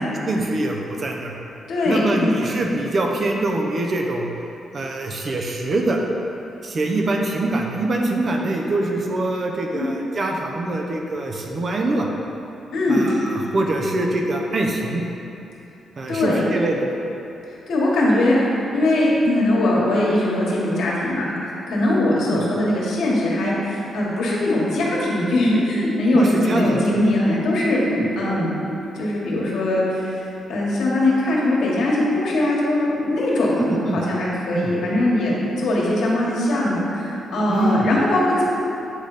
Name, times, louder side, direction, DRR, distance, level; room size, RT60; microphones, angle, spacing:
voice 1, 0.2-1.3 1.9-4.3 4.7-6.0 6.6-12.1 12.9-13.2 13.5-15.0 16.0-17.0 22.3-22.4 26.1-26.8 27.9-28.0 33.6-34.0 34.5-34.7 37.5-37.9, right 2 dB, 40° right, 1 dB, 0.8 m, -23 dB
voice 2, 1.7-2.3 9.7-9.9 12.7-13.0 16.1-16.5 17.7-18.4 18.7-28.6 28.9-30.2 30.5-38.4, left 1 dB, 75° left, -5 dB, 1.7 m, -21 dB
8.7 x 4.0 x 5.0 m, 2.9 s
cardioid pair, 130°, 0 cm